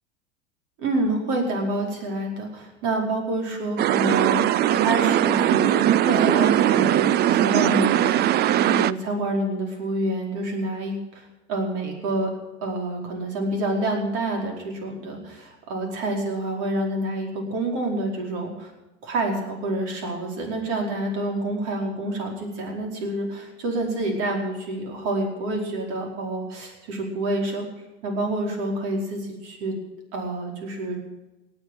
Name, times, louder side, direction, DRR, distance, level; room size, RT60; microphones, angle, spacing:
voice 1, 0.8-4.4 4.7-12.3 12.6-18.7 19.0-27.7 28.0-29.7 30.1-31.0, right 1 dB, 60° right, 1 dB, 4.9 m, -28 dB
sound 1, 3.8-8.9, right 12 dB, 30° right, 0.5 m, -20 dB
18.5 x 8.0 x 9.0 m, 1.1 s
hypercardioid pair, 85°, 34 cm